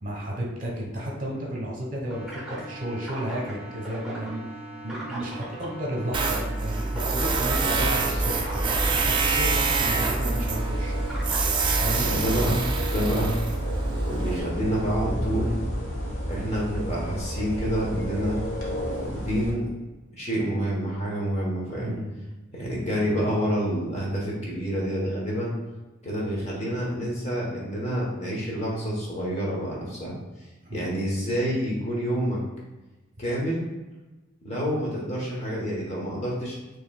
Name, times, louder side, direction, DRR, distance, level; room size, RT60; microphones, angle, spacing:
voice 1, 0.0-4.4 4.8-11.2 11.8-12.1 21.8-22.1 30.6-30.8, equal, 40° right, -2 dB, 1.1 m, -33 dB
sound 1, 2.1-13.0, right 1 dB, 5° right, 0.8 m, -39 dB
Tools, 6.1-14.4, right 4 dB, 25° right, 0.3 m, -26 dB
sound 2, 7.1-19.5, equal, 90° left, 1.2 m, -32 dB
voice 2, 12.1-12.6 12.9-13.3 14.1-15.5 16.3-18.4 19.0-19.7 20.2-21.9 22.5-25.5 26.0-30.1 30.7-32.4 33.2-33.6 34.4-36.6, equal, 35° left, -4 dB, 1.0 m, -28 dB
5.4 x 3.0 x 2.3 m, 1.1 s
head